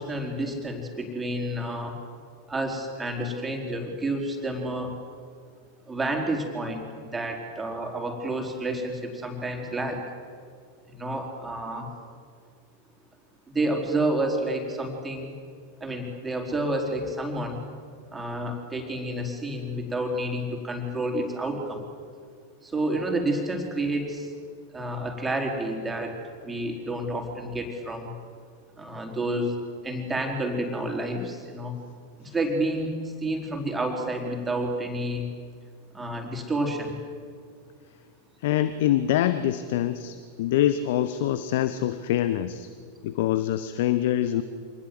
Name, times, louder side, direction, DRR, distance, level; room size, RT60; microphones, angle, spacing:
voice 1, 0.0-2.0 2.5-4.9 5.9-6.9 7.1-10.0 10.9-11.9 13.5-15.3 15.8-17.6 18.1-21.8 22.6-24.3 24.7-28.1 28.8-29.6 29.8-31.7 32.2-35.3 35.9-36.9, right 1 dB, 10° right, 2 dB, 4.4 m, -29 dB
voice 2, 38.4-42.7 43.0-44.4, left 12 dB, 55° left, 13 dB, 0.9 m, -25 dB
26.5 x 20.0 x 7.8 m, 2.1 s
figure-of-eight pair, 90°, 0 cm